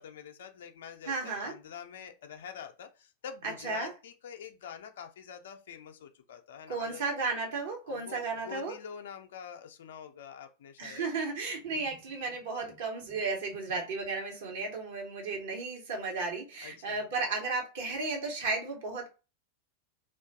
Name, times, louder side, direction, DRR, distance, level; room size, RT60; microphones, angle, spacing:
voice 1, 0.0-7.0 7.9-11.1 16.6-17.1, left 7 dB, 60° left, 0.5 m, -46 dB
voice 2, 1.0-1.6 3.6-3.9 6.7-8.8 10.8-19.1, right 3 dB, 55° right, 1.1 m, -34 dB
2.5 x 2.4 x 3.5 m
figure-of-eight pair, 90°, 0 cm